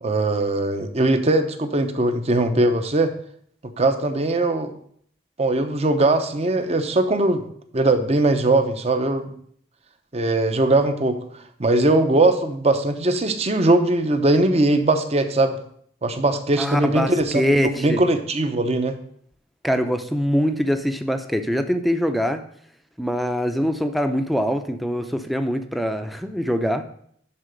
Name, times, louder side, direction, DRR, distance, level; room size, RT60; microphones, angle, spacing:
voice 1, 0.0-3.1 3.8-4.7 5.4-7.4 7.7-9.3 10.1-11.2 11.6-15.6 16.0-19.0, right 2 dB, 35° right, 8 dB, 0.7 m, -20 dB
voice 2, 16.6-18.0 19.6-22.4 23.0-26.8, equal, ahead, 7 dB, 0.5 m, -23 dB
11.0 x 4.1 x 5.1 m, 0.65 s
head